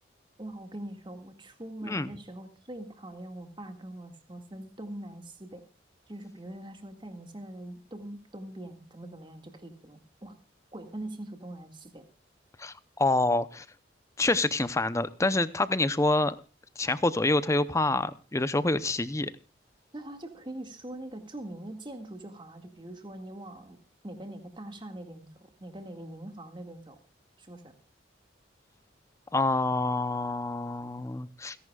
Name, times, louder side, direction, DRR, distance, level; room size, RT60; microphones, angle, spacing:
voice 1, 0.4-5.6 6.1-10.3 10.7-12.0 19.9-23.8 24.0-27.0 27.4-27.7, right 1 dB, 25° right, 6 dB, 2.0 m, -42 dB
voice 2, 12.6-13.7 14.2-16.3 16.8-19.3 29.3-31.6, left 2 dB, 15° left, 14 dB, 0.6 m, -27 dB
29.5 x 11.0 x 2.4 m, 0.31 s
head